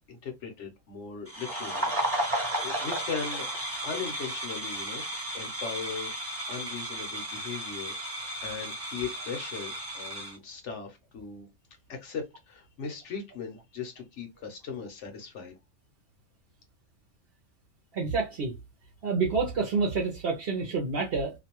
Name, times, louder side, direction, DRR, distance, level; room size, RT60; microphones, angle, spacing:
voice 1, 0.1-1.9 2.2-3.5 3.8-5.0 5.3-6.1 6.5-11.5 11.9-15.6, left 5 dB, 60° left, 0.9 m, -38 dB
sound 1, 1.3-10.4, right 1 dB, 10° right, 0.9 m, -34 dB
voice 2, 17.9-18.5 19.0-21.3, right 4 dB, 55° right, 0.7 m, -28 dB
2.5 x 2.2 x 2.8 m
omnidirectional pair, 1.5 m